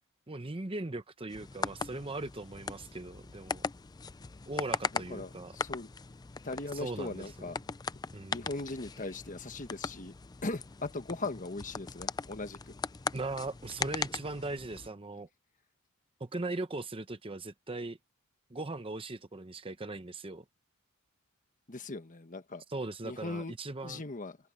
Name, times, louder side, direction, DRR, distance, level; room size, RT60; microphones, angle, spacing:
voice 1, 0.3-3.6 4.5-5.5 6.8-7.2 8.1-8.4 13.1-15.3 16.2-18.0 18.5-20.4 22.7-24.0, right 2 dB, 25° right, 0.9 m, -39 dB
sound 1, 1.3-14.9, left 5 dB, 20° left, 0.4 m, -39 dB
voice 2, 4.9-5.9 6.4-7.6 8.3-10.1 10.4-12.7 21.7-22.6 23.0-23.6 23.8-24.4, left 2 dB, 35° left, 1.4 m, -39 dB
open air
head